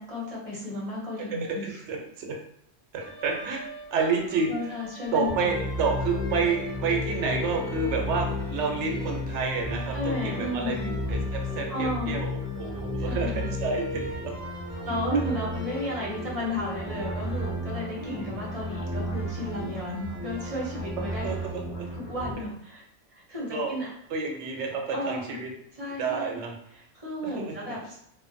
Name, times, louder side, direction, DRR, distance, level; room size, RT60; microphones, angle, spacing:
voice 1, 0.0-1.8 4.5-5.6 9.9-10.9 11.7-12.2 13.0-13.5 14.9-21.3 21.9-22.8 23.1-23.9 24.9-25.4 25.7-26.4 26.7-28.0, left 1 dB, 35° right, -5 dB, 0.8 m, -33 dB
voice 2, 1.6-2.4 2.9-3.6 3.9-4.7 5.1-10.8 11.1-12.3 12.6-14.3 18.0-18.3 21.0-21.9 23.5-23.8 24.1-25.5 26.0-26.5 27.2-27.7, right 4 dB, 80° right, 1 dB, 0.9 m, -29 dB
sound 1, 3.0-21.5, equal, 50° left, 1.0 m, -43 dB
sound 2, 5.3-22.3, left 1 dB, ahead, 0.4 m, -33 dB
sound 3, 7.0-12.3, right 1 dB, 35° left, 1.3 m, -47 dB
2.5 x 2.1 x 2.5 m, 0.73 s
omnidirectional pair, 1.2 m